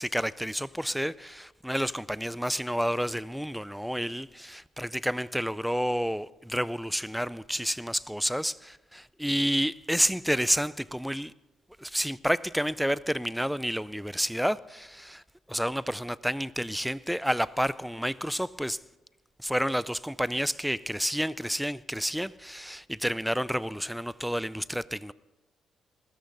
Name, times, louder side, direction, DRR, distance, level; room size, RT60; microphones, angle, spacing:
voice 1, 0.0-11.3 11.8-15.2 15.5-18.8 19.4-25.1, equal, ahead, 0.4 m, -30 dB
21.5 x 13.0 x 4.0 m
cardioid pair, 90°, 0 cm